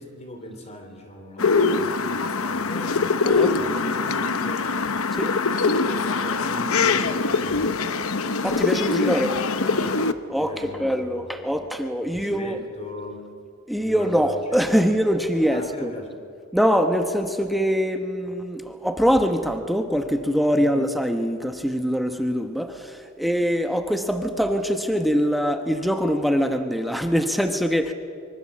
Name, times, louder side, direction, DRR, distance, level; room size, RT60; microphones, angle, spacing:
voice 1, 0.0-3.2 3.5-4.8 5.9-7.8 9.7-10.0 10.3-11.5 12.0-13.3 13.8-15.0 15.5-16.2 20.6-20.8, equal, 30° left, 6 dB, 3.3 m, -39 dB
sound 1, 1.4-10.1, left 4 dB, 70° left, 1.0 m, -23 dB
voice 2, 3.2-3.6 5.1-5.4 8.4-9.4 10.3-10.5 10.8-12.6 13.7-15.9 16.5-27.9, equal, ahead, 5 dB, 1.0 m, -23 dB
25.0 x 24.0 x 7.5 m, 2.4 s
head